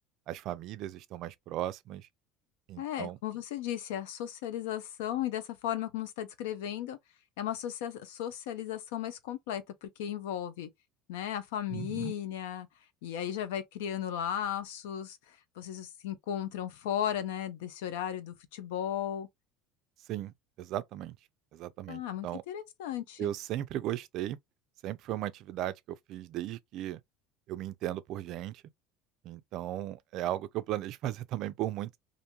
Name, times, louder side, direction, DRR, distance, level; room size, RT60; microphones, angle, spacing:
voice 1, 0.3-2.1 2.7-3.2 11.7-12.1 20.1-21.2 21.5-22.4 23.2-24.4 24.8-27.0 27.5-28.6 29.2-32.0, right 13 dB, 55° right, 0.3 m, -36 dB
voice 2, 2.8-7.0 7.4-10.7 11.1-12.7 13.0-19.3 21.9-23.3, left 10 dB, 90° left, 0.5 m, -35 dB
2.5 x 2.1 x 2.8 m
supercardioid pair, 120°, 0 cm